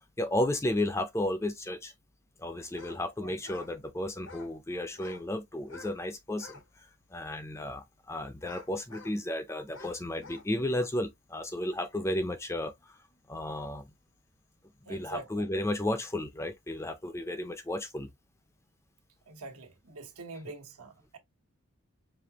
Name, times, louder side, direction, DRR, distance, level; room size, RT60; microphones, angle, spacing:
voice 1, 0.2-1.9 2.4-13.0 13.3-13.9 14.9-18.1, left 1 dB, 10° left, 0.4 m, -33 dB
sound 1, 2.7-3.0 3.3-3.7 4.2-4.5 4.9-5.3 5.6-6.0 6.3-6.7 7.2-7.3 8.4-9.2 9.7-10.5, left 3 dB, 55° left, 0.8 m, -49 dB
voice 2, 14.9-15.4 19.3-21.2, right 3 dB, 80° right, 1.2 m, -45 dB
5.1 x 2.7 x 2.9 m
head